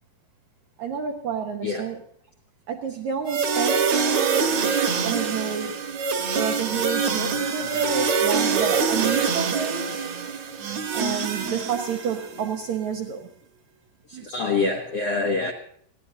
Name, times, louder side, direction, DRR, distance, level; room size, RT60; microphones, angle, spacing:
voice 1, 0.8-2.0 2.7-4.5 5.0-5.7 6.3-10.0 10.9-13.3 14.1-14.3, right 7 dB, 75° right, 3 dB, 1.7 m, -30 dB
sound 1, 3.3-12.4, right 5 dB, 55° right, 2.2 m, -25 dB
voice 2, 14.1-15.5, left 3 dB, 75° left, 1 dB, 1.4 m, -26 dB
20.5 x 16.0 x 2.8 m, 0.65 s
omnidirectional pair, 4.8 m